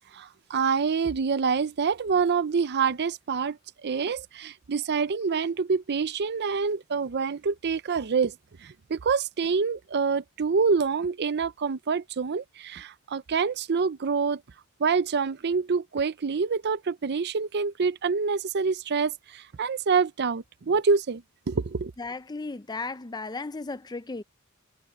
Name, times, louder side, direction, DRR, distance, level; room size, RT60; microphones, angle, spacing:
voice 1, 0.1-8.3 8.6-14.4 14.8-21.9, right 5 dB, 50° right, 0.5 m, -26 dB
voice 2, 22.0-24.2, left 3 dB, 20° left, 0.5 m, -35 dB
head